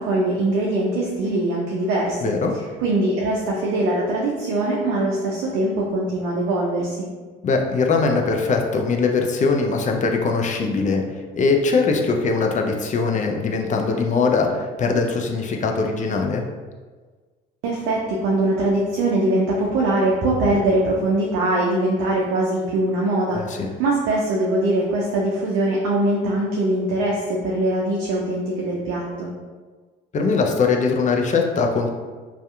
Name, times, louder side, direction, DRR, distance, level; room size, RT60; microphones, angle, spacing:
voice 1, 0.0-2.2 2.8-7.1 17.6-29.3, right 1 dB, 75° right, -3 dB, 0.5 m, -22 dB
voice 2, 2.2-2.5 7.4-16.4 23.3-23.7 30.1-31.9, left 4 dB, 35° left, 3 dB, 0.4 m, -21 dB
2.7 x 2.4 x 2.2 m, 1.4 s
supercardioid pair, 65°, 21 cm